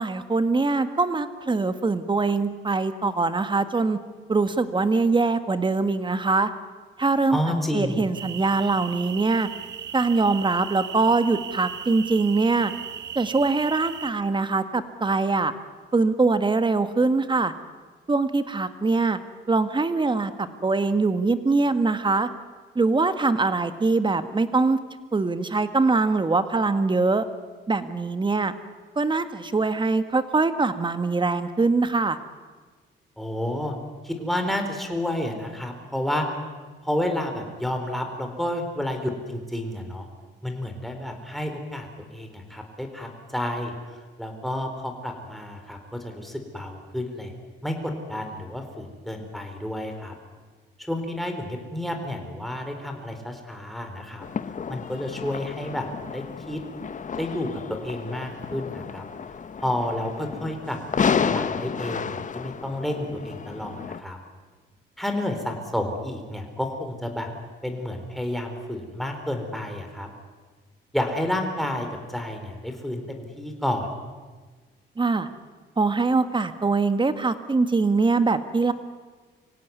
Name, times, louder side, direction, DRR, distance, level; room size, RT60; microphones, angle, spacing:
voice 1, 0.0-4.0 4.3-6.5 7.0-9.5 9.9-12.7 13.2-15.5 15.9-17.5 18.1-19.2 19.5-22.3 22.8-24.8 25.1-27.2 27.7-28.5 29.0-32.2 75.0-75.2 75.8-78.7, right 3 dB, 25° right, 10 dB, 1.7 m, -23 dB
voice 2, 7.3-8.1 33.2-33.7 34.0-36.3 36.8-40.1 40.4-47.3 47.6-50.1 50.8-54.3 54.7-56.6 57.1-59.0 59.6-64.2 65.0-67.3 67.6-70.1 70.9-73.9, left 1 dB, ahead, 3 dB, 4.4 m, -30 dB
sound 1, 8.1-14.1, right 9 dB, 60° right, 1.3 m, -37 dB
sound 2, 54.2-64.0, left 6 dB, 40° left, 1.1 m, -31 dB
25.0 x 17.0 x 9.6 m, 1.4 s
cardioid pair, 90°, 20 cm